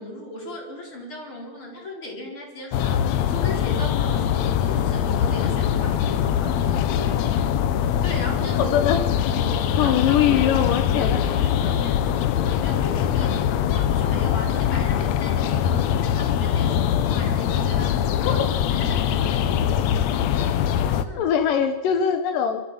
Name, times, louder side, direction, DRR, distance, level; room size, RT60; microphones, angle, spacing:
voice 1, 0.0-7.2 8.0-10.5 10.9-18.4 18.7-20.0 20.8-21.3, left 1 dB, 40° left, 0 dB, 5.1 m, -37 dB
sound 1, 2.7-21.1, left 9 dB, 70° left, 1.8 m, -22 dB
voice 2, 8.6-9.0 9.8-11.2 18.3-18.5 21.2-22.6, left 9 dB, 85° left, 7 dB, 2.7 m, -22 dB
29.5 x 13.0 x 7.8 m, 1.3 s
omnidirectional pair, 3.8 m